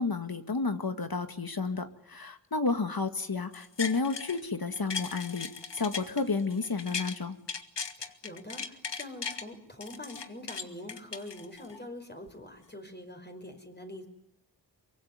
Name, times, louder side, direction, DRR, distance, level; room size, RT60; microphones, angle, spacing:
voice 1, 0.0-7.4, left 4 dB, 60° left, 8 dB, 2.1 m, -31 dB
sound 1, 3.5-4.4 4.7-7.2 7.5-9.4 9.8-11.8 12.3-12.4, left 5 dB, 85° left, 1.8 m, -38 dB
voice 2, 8.0-14.1, left 1 dB, 25° left, 5 dB, 5.2 m, -44 dB
23.5 x 23.5 x 9.7 m, 0.82 s
wide cardioid pair, 70°, 42 cm